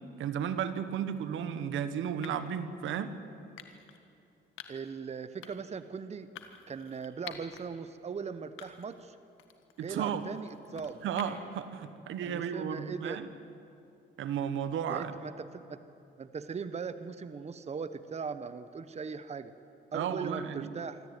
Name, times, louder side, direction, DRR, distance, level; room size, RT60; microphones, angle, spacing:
voice 1, 0.2-3.1 9.8-10.3 11.0-13.3 14.2-15.1 19.9-20.7, right 8 dB, 80° right, 11 dB, 1.3 m, -34 dB
sound 1, 0.9-1.2 2.2-2.6 3.6-4.0 4.6-4.9 5.4-5.8 6.4-7.6 8.0-8.1 8.6-9.0 9.4-11.6, left 10 dB, 90° left, 1.7 m, -49 dB
voice 2, 4.7-6.3 6.7-9.2 9.8-11.0 12.2-13.2 14.9-15.8 16.2-19.5 19.9-21.0, right 5 dB, 35° right, 12 dB, 0.9 m, -39 dB
25.0 x 14.0 x 9.3 m, 2.7 s
cardioid pair, 90°, 20 cm